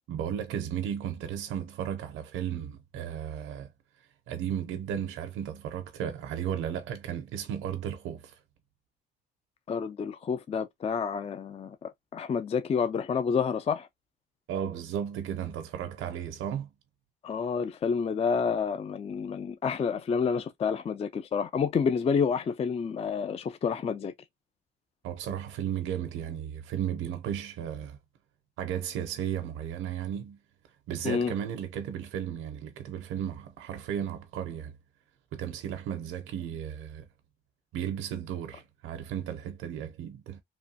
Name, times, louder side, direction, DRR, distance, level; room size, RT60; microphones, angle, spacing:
voice 1, 0.1-3.7 4.3-8.4 14.5-16.7 25.0-28.0 28.6-30.4 30.9-34.7 35.3-37.1 37.7-40.4, right 9 dB, 85° right, 0.6 m, -34 dB
voice 2, 9.7-13.9 17.2-24.1 31.0-31.3, left 6 dB, 30° left, 0.4 m, -29 dB
3.0 x 2.3 x 2.6 m
cardioid pair, 90°, 20 cm